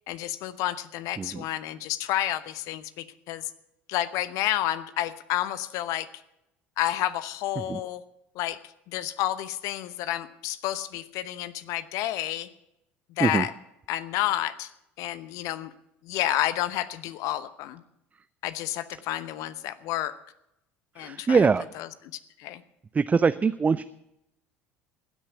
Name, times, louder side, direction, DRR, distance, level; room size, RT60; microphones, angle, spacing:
voice 1, 0.0-3.5 3.9-6.1 6.8-8.0 8.3-8.6 8.9-12.5 13.1-13.5 13.9-14.7 15.0-15.7 16.0-17.8 18.4-20.2 21.0-21.5 21.7-22.1 22.4-22.6, left 13 dB, 60° left, 14 dB, 0.9 m, -30 dB
voice 2, 21.0-21.6 22.9-23.8, right 5 dB, 25° right, 14 dB, 0.5 m, -23 dB
16.0 x 8.9 x 8.2 m, 0.83 s
hypercardioid pair, 65°, 6 cm